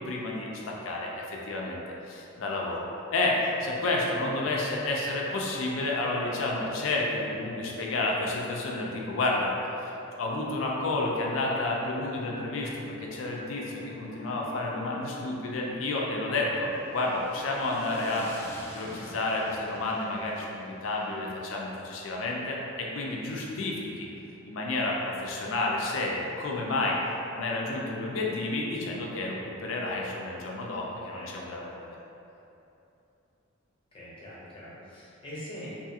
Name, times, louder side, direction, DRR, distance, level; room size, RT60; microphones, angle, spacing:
voice 1, 0.1-1.8 2.1-9.5 9.8-12.7 13.0-18.3 18.7-24.1 24.4-27.0 27.3-32.0, left 2 dB, 80° left, -2 dB, 0.4 m, -30 dB
Bowed string instrument, 12.6-19.2, left 1 dB, 80° right, 1.2 m, -49 dB
sound 1, 16.4-24.7, equal, 10° left, 0.4 m, -49 dB
voice 2, 33.9-35.8, equal, 30° left, -9 dB, 0.8 m, -43 dB
2.6 x 2.4 x 2.7 m, 2.9 s
head